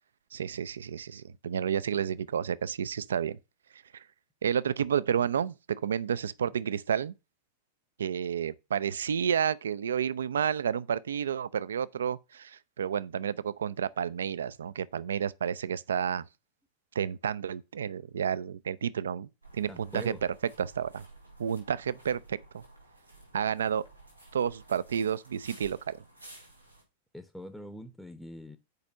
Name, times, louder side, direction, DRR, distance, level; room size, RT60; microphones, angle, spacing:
voice 1, 0.3-3.4 3.9-4.0 4.4-5.5 5.8-7.1 8.0-16.2 17.0-19.3 19.5-20.1 20.6-21.0 21.4-22.6 23.3-23.8 24.3-26.0, right 8 dB, 65° right, 0.4 m, -30 dB
sound 1, 19.4-26.8, right 2 dB, 90° right, 3.6 m, -53 dB
voice 2, 19.7-20.2 27.1-28.6, equal, ahead, 0.7 m, -43 dB
6.7 x 5.1 x 6.1 m
figure-of-eight pair, 90°, 0 cm